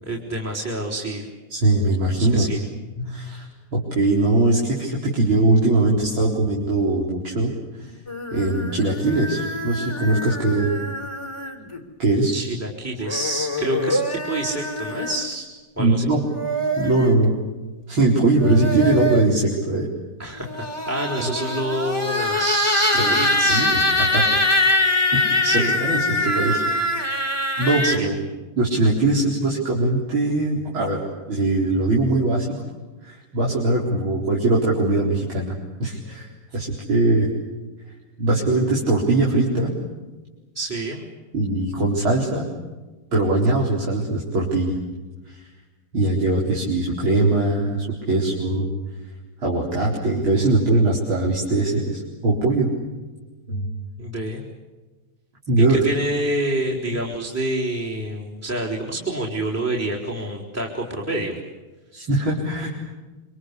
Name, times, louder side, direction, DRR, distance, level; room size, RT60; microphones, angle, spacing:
voice 1, 0.0-1.3 2.2-2.6 12.3-15.5 15.8-16.1 20.2-23.6 25.4-25.8 27.8-28.1 40.5-41.0 54.0-54.4 55.7-61.4, right 1 dB, 5° right, 1 dB, 3.9 m, -27 dB
voice 2, 1.5-2.4 2.9-3.5 3.7-7.5 7.8-7.9 8.3-10.7 12.0-12.3 15.8-16.2 16.8-17.3 17.9-19.9 21.2-21.3 23.0-23.1 23.5-24.2 25.1-26.6 27.6-28.1 28.5-32.6 33.0-37.3 38.2-39.7 41.3-42.5 43.1-44.8 45.3-45.4 45.9-48.7 49.4-52.7 53.5-53.7 55.5-55.8 61.9-62.7, right 2 dB, 65° right, -3 dB, 5.1 m, -21 dB
sound 1, 8.1-11.8 13.0-15.3 16.1-17.1 18.2-19.4 20.4-28.0, left 1 dB, 15° left, 2.9 m, -24 dB
26.5 x 26.0 x 8.4 m, 1.2 s
omnidirectional pair, 2.4 m